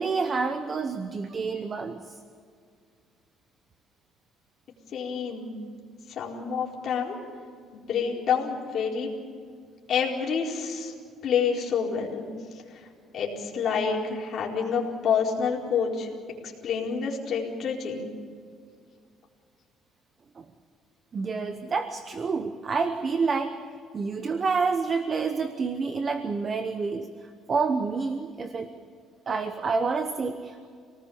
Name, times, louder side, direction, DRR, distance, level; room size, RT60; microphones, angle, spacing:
voice 1, 0.0-2.1 21.1-23.6 23.9-27.1 27.5-28.7 29.3-30.7, right 4 dB, 25° right, 8 dB, 0.9 m, -28 dB
voice 2, 4.9-5.6 6.1-7.2 7.7-9.1 9.9-10.9 11.2-12.9 13.1-16.1 16.4-18.1, left 6 dB, 40° left, -2 dB, 4.4 m, -28 dB
26.5 x 19.0 x 7.1 m, 2.1 s
cardioid pair, 170°, 0 cm